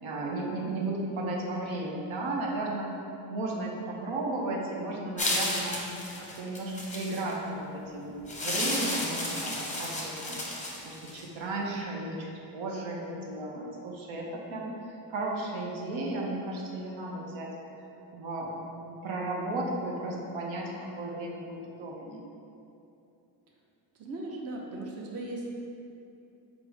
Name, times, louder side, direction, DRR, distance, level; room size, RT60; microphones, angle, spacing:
voice 1, 0.0-3.0 3.3-5.8 6.2-10.4 10.8-14.7 15.1-17.5 18.1-22.2, right 2 dB, 75° right, -2 dB, 0.8 m, -34 dB
sound 1, 5.2-7.3 8.3-11.2, left 1 dB, 15° left, 0.6 m, -32 dB
voice 2, 23.9-25.5, right 2 dB, 35° right, -2 dB, 0.5 m, -37 dB
4.7 x 2.1 x 4.7 m, 2.7 s
cardioid pair, 105°, 47 cm